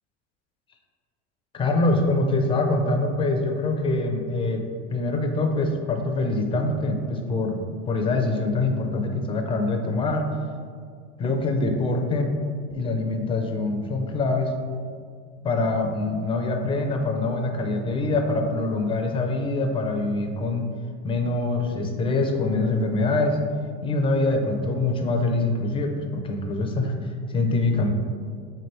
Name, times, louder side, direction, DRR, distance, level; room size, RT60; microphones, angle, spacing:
voice 1, 1.5-7.6 7.9-10.3 11.2-12.3 12.7-14.5 15.4-20.7 21.0-23.4 23.8-27.9, left 2 dB, 15° left, 4 dB, 0.4 m, -24 dB
3.7 x 3.3 x 4.3 m, 2.1 s
supercardioid pair, 120°, 35 cm